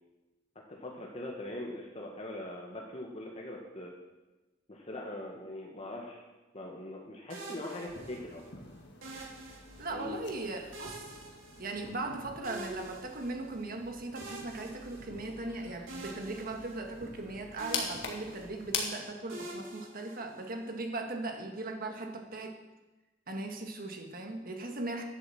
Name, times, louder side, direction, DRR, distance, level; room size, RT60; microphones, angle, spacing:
voice 1, 0.8-3.9 4.7-6.2 6.5-8.6 9.9-10.2, left 1 dB, 30° left, -1 dB, 1.6 m, -41 dB
sound 1, 7.3-8.5 9.0-10.1 10.7-12.1 12.4-13.6 14.1-15.5 15.9-17.3 17.6-18.8 19.3-20.7, right 2 dB, 75° right, 3.7 m, -47 dB
sound 2, 7.8-18.8, left 5 dB, 55° left, 2.0 m, -44 dB
voice 2, 9.8-11.1 11.6-22.6 23.3-25.0, right 2 dB, 45° right, 3 dB, 1.6 m, -38 dB
11.0 x 7.8 x 7.6 m, 1.1 s
head